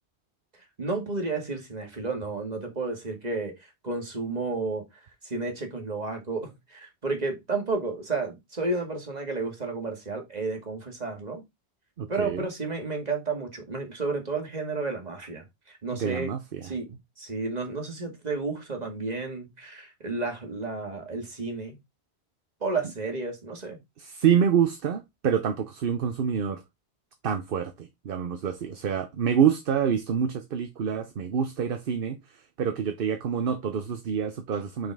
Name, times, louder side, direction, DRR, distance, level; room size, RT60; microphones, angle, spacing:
voice 1, 0.8-3.6 3.8-4.8 5.2-11.4 12.1-16.3 16.6-16.9 17.2-21.8 22.6-23.8, right 3 dB, 40° right, 2.0 m, -32 dB
voice 2, 12.0-12.5 15.9-16.7 24.0-26.6 27.2-32.2 32.6-34.9, right 8 dB, 60° right, 0.9 m, -27 dB
5.7 x 5.3 x 3.5 m
omnidirectional pair, 1.1 m